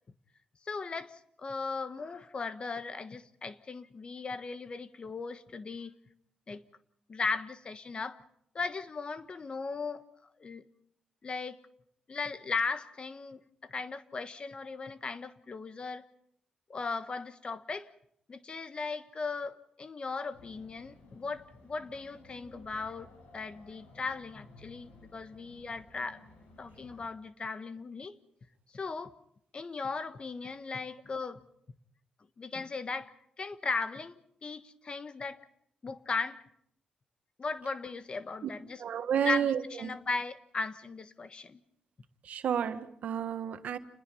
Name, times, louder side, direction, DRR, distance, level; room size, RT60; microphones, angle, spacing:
voice 1, 0.6-6.0 6.5-6.6 7.1-8.2 8.5-10.0 10.4-10.7 11.2-11.6 12.1-16.0 16.7-17.9 18.3-26.2 26.6-28.2 28.7-29.1 29.5-31.4 32.4-35.4 35.8-36.4 37.4-38.8 39.2-41.6, left 4 dB, 40° left, 1.3 m, -37 dB
sound 1, 20.3-27.1, left 2 dB, 90° left, 6.8 m, -56 dB
voice 2, 38.8-39.9 42.2-43.8, right 8 dB, 75° right, 1.4 m, -31 dB
29.0 x 20.5 x 5.6 m
cardioid pair, 80°, 3 cm